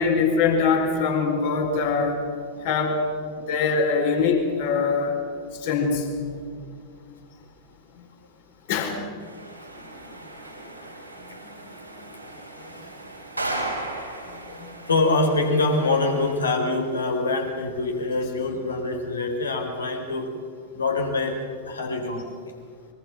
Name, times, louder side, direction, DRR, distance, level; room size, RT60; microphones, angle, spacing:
voice 1, 0.0-2.1 2.6-3.0 3.5-5.1 5.6-6.0 8.7-8.9, left 5 dB, 50° left, 3 dB, 4.5 m, -22 dB
sound 1, 9.2-16.3, right 2 dB, 90° right, 4.0 m, -36 dB
voice 2, 9.8-10.2 11.1-12.2 12.6-13.0 14.2-20.3 20.7-22.5, left 2 dB, 75° left, 4 dB, 3.8 m, -26 dB
24.0 x 23.5 x 6.0 m, 2.1 s
figure-of-eight pair, 90°, 0 cm